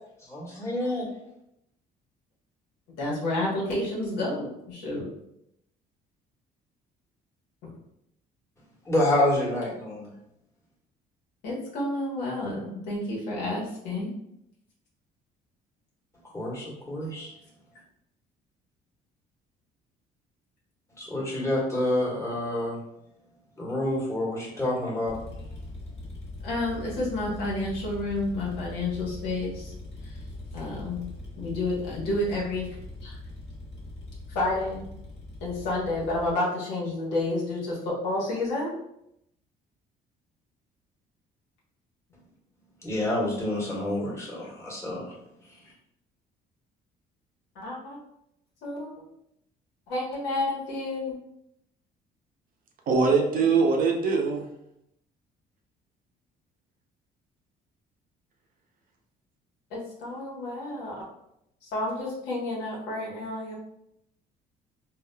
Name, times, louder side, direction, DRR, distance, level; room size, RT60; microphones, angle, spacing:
voice 1, 0.2-1.1 8.8-10.1 16.3-17.3 21.0-22.8 23.6-25.2 42.8-45.0 45.5-45.6, left 1 dB, 15° left, -5 dB, 1.3 m, -28 dB
voice 2, 3.0-5.1 11.4-14.1 26.4-29.7 30.0-30.1 30.5-31.1 31.4-32.7 33.0-33.1 34.3-34.8 35.4-38.7 47.5-48.0 48.6-49.0 49.9-51.2 59.7-60.9 61.6-63.5, left 2 dB, 90° left, -5 dB, 1.1 m, -30 dB
sound 1, 25.0-36.3, left 2 dB, 35° left, 1.2 m, -41 dB
voice 3, 52.9-54.4, right 4 dB, 55° right, 2 dB, 0.6 m, -22 dB
3.7 x 2.4 x 2.2 m, 0.79 s
cardioid pair, 110°, 17 cm